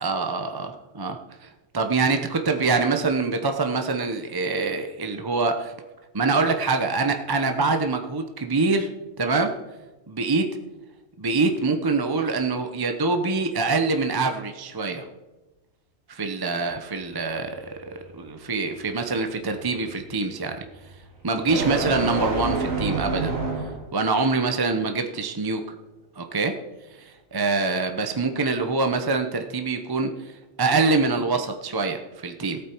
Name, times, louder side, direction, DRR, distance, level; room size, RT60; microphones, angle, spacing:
voice 1, 0.0-1.5 1.7-5.7 6.1-8.9 9.2-9.6 10.1-10.5 11.2-15.0 16.1-17.8 18.1-20.6 21.2-23.3 23.9-25.6 26.2-26.6 27.3-30.3 30.6-32.6, right 3 dB, 20° right, 5 dB, 0.7 m, -25 dB
sound 1, 17.0-23.9, right 2 dB, 80° right, 2.9 m, -30 dB
17.5 x 8.7 x 4.5 m, 1.1 s
omnidirectional pair, 1.4 m